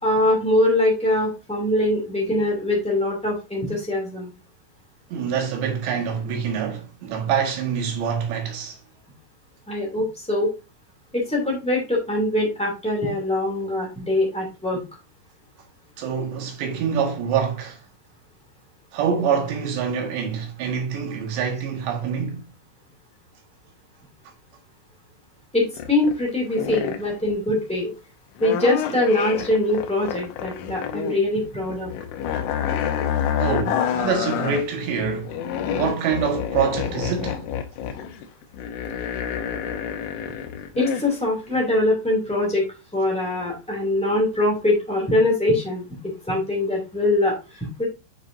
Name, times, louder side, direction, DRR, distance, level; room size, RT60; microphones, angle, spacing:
voice 1, 0.0-4.3 9.7-10.5 11.1-14.8 25.5-27.9 28.4-31.9 40.7-42.7 42.9-45.8 46.3-47.8, left 1 dB, 5° left, 0.9 m, -23 dB
voice 2, 5.1-8.8 16.0-17.8 18.9-22.4 33.4-35.3 35.7-37.4, right 7 dB, 70° right, 3.6 m, -25 dB
sound 1, 25.6-26.2 26.5-27.1 28.4-31.2 31.4-34.6 35.0-41.1 41.5-41.6, left 9 dB, 85° left, 3.4 m, -28 dB
8.9 x 4.9 x 2.6 m
omnidirectional pair, 5.5 m